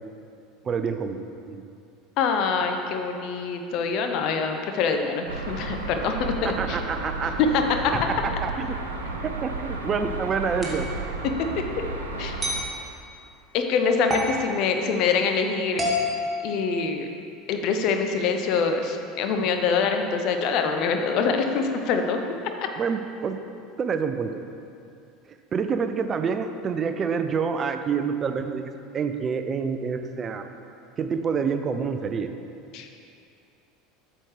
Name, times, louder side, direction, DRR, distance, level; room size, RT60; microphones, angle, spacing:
voice 1, 0.6-1.6 6.4-7.4 7.9-8.8 9.2-10.9 22.8-23.4 23.8-24.4 25.3-30.5 31.0-32.3, right 6 dB, 35° right, 8 dB, 0.4 m, -27 dB
voice 2, 2.2-6.8 7.5-8.1 12.2-12.4 13.5-15.9 16.4-17.1 17.5-22.2 32.7-32.9, left 5 dB, 55° left, 5 dB, 0.7 m, -25 dB
sound 1, 5.3-12.6, right 2 dB, 85° right, 0.6 m, -33 dB
sound 2, 10.6-10.9 12.4-12.7 14.1-14.4 15.8-17.2, left 1 dB, 15° right, 1.7 m, -28 dB
8.4 x 6.5 x 3.2 m, 2.5 s
figure-of-eight pair, 75°, 0 cm